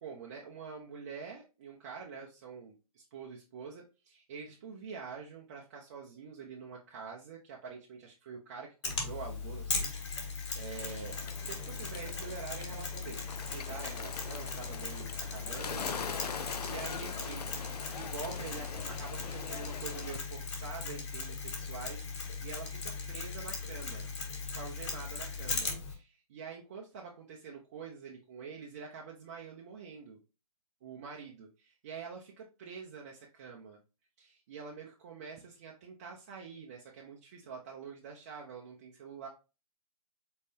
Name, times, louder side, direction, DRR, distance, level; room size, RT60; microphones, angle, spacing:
voice 1, 0.0-11.2 11.4-24.1 24.5-30.2 30.8-33.8 34.2-39.3, right 5 dB, 25° right, -1 dB, 0.5 m, -46 dB
Mechanisms, 8.8-25.9, left 4 dB, 50° left, 1.6 m, -38 dB
Bird, 10.7-20.2, left 6 dB, 85° left, 0.5 m, -43 dB
4.3 x 3.6 x 2.6 m, 0.29 s
hypercardioid pair, 155°, 20 cm